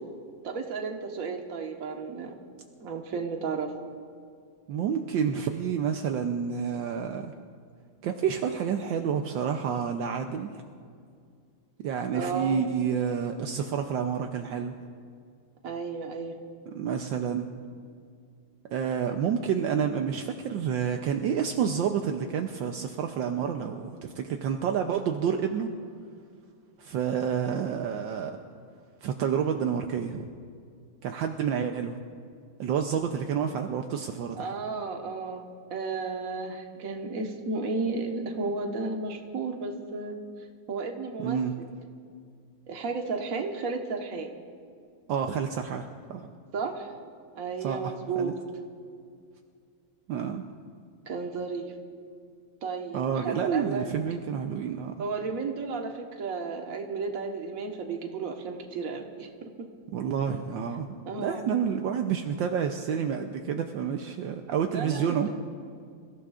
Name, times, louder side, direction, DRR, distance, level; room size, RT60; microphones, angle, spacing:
voice 1, 0.4-2.4 2.8-3.7 12.1-12.6 15.6-16.3 34.3-35.4 35.7-40.1 40.7-41.4 42.7-44.3 46.5-46.9 47.3-48.3 51.1-51.7 52.6-53.9 55.0-59.5 61.0-61.4 64.7-65.0, right 4 dB, 45° right, 2 dB, 1.5 m, -33 dB
voice 2, 4.7-7.3 8.0-10.5 11.8-14.8 16.7-17.5 18.7-25.7 26.8-28.4 29.0-30.3 31.0-32.0 32.6-34.5 41.2-41.5 45.1-46.3 47.6-48.3 50.1-50.4 52.9-54.9 59.9-60.9 61.2-65.3, right 7 dB, 75° right, 4 dB, 1.4 m, -29 dB
28.0 x 15.5 x 2.5 m, 2.2 s
omnidirectional pair, 2.2 m